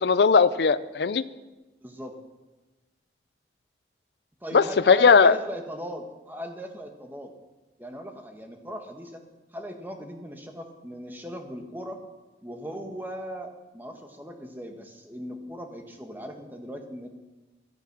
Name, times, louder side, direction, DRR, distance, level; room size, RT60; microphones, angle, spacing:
voice 1, 0.0-1.2 4.5-5.3, left 5 dB, 75° left, 14 dB, 0.5 m, -18 dB
voice 2, 1.8-2.1 4.4-7.3 7.8-9.2 9.5-12.0 12.4-17.1, equal, 10° right, 4 dB, 1.5 m, -38 dB
15.0 x 11.5 x 6.1 m, 1.1 s
head